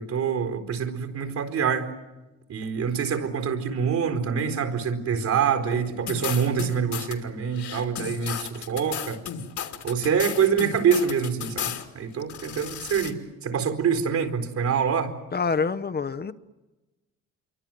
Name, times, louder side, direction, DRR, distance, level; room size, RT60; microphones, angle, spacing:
voice 1, 0.0-1.9 2.5-9.2 9.8-15.1, right 7 dB, 65° right, 4.5 m, -25 dB
sound 1, 6.1-7.1 7.5-11.8 12.2-13.1, left 8 dB, 70° left, 3.0 m, -34 dB
voice 2, 15.3-16.3, left 5 dB, 35° left, 1.1 m, -26 dB
27.5 x 24.0 x 7.8 m
cardioid pair, 90°, 30 cm